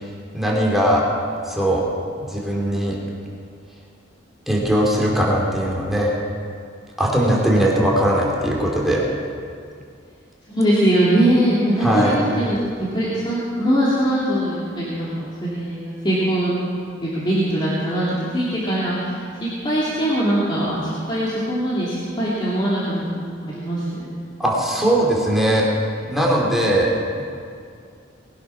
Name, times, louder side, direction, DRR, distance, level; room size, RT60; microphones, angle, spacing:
voice 1, 0.3-1.0 1.4-1.8 2.3-3.0 4.5-6.1 7.0-9.0 11.8-12.2 24.4-25.7 26.1-26.9, right 1 dB, ahead, -4 dB, 2.8 m, -19 dB
voice 2, 10.5-16.5 17.0-18.1 18.3-19.1 19.4-20.8 21.1-23.1 23.4-24.1, right 1 dB, 25° left, -9 dB, 2.8 m, -21 dB
20.5 x 11.0 x 5.9 m, 2.3 s
head